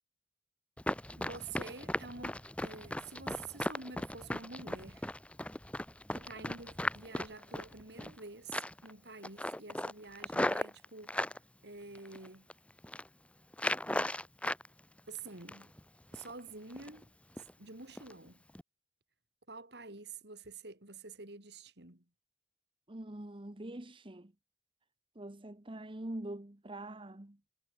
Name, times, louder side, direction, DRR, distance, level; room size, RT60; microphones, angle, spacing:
Run, 0.8-8.2 8.5-8.9 9.2-11.4 11.9-12.5 12.8-13.1 13.5-14.7 15.0-15.8 16.1-16.3 16.7-17.0 17.4-17.5 18.0-18.1 18.5-18.6, left 1 dB, 5° left, 1.5 m, -37 dB
voice 1, 1.2-5.1 6.1-11.4 11.6-12.5 15.1-15.7 16.1-17.1 17.4-18.4 19.5-22.0, right 4 dB, 70° right, 4.4 m, -48 dB
voice 2, 22.9-24.3 25.1-27.4, right 1 dB, 30° right, 1.3 m, -44 dB
head